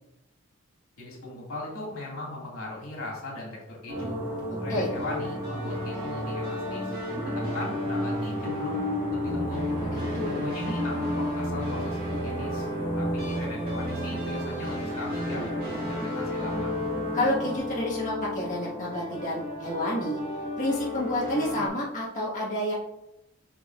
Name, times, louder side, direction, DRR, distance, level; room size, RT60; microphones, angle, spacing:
voice 1, 1.0-4.2 4.6-6.9 7.2-8.8 9.1-9.6 10.3-12.7 13.0-16.7, left 2 dB, 90° left, -3 dB, 2.3 m, -38 dB
sound 1, 3.9-17.6, right 1 dB, 10° right, 0.3 m, -35 dB
sound 2, 3.9-21.7, left 1 dB, 45° right, 1.7 m, -33 dB
voice 2, 17.1-20.2 20.6-22.7, left 1 dB, 35° left, -7 dB, 1.6 m, -29 dB
7.2 x 5.4 x 2.5 m, 0.90 s
head